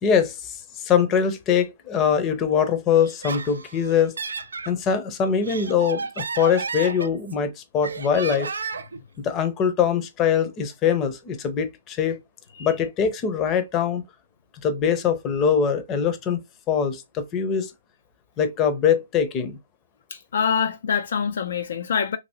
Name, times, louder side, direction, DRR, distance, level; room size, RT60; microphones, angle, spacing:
voice 1, 0.0-4.2 4.7-8.5 9.2-12.2 12.6-14.0 14.6-16.4 16.7-17.7 18.4-19.6, left 7 dB, 25° left, 0.6 m, -23 dB
Laughter, 3.0-4.7 5.3-7.5 7.8-9.0, right 4 dB, 80° right, 0.4 m, -32 dB
voice 2, 20.1-22.2, left 7 dB, 65° left, 0.4 m, -25 dB
2.8 x 2.7 x 2.8 m
hypercardioid pair, 135°, 0 cm